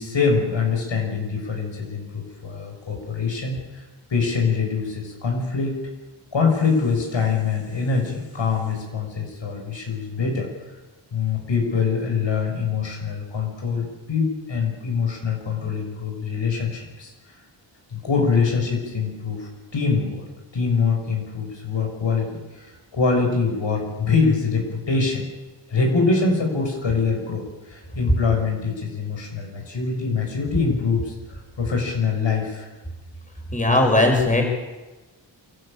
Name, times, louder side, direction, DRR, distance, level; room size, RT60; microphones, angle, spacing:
voice 1, 0.0-3.8 4.1-5.8 6.3-10.5 11.1-17.1 17.9-20.2 20.5-25.2 25.7-32.7, left 5 dB, 70° left, 0 dB, 6.6 m, -24 dB
voice 2, 33.5-34.4, left 2 dB, 15° left, 1 dB, 6.1 m, -18 dB
28.0 x 12.5 x 9.0 m, 1.1 s
cardioid pair, 80°, 46 cm